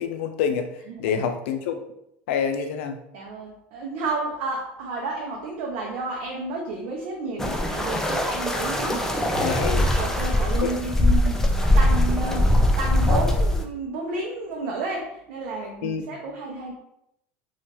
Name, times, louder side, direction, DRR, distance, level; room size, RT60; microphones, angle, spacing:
voice 1, 0.0-0.7 1.0-1.8 2.3-3.0 9.3-9.9 10.6-10.7 15.8-16.2, left 7 dB, 80° left, 6 dB, 0.4 m, -27 dB
voice 2, 0.9-1.2 3.1-9.5 9.8-11.4 11.8-16.7, right 3 dB, 70° right, -2 dB, 0.6 m, -31 dB
sound 1, 7.4-13.6, left 1 dB, 5° left, 0.4 m, -21 dB
2.9 x 2.3 x 2.9 m, 0.79 s
supercardioid pair, 105°, 6 cm